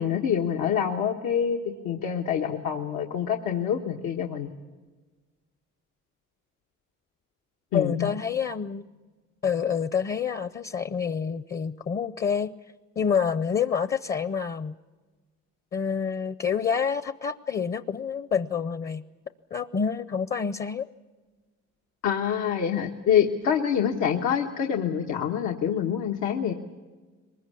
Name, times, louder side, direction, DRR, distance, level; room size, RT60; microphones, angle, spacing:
voice 1, 0.0-4.5 7.7-8.1 22.0-26.5, left 8 dB, 90° left, 1 dB, 1.4 m, -26 dB
voice 2, 7.7-8.8 9.4-12.5 13.0-14.7 15.7-19.0 19.5-20.9, left 6 dB, 30° left, 13 dB, 0.6 m, -27 dB
23.0 x 21.0 x 8.5 m, 1.3 s
cardioid pair, 90°, 30 cm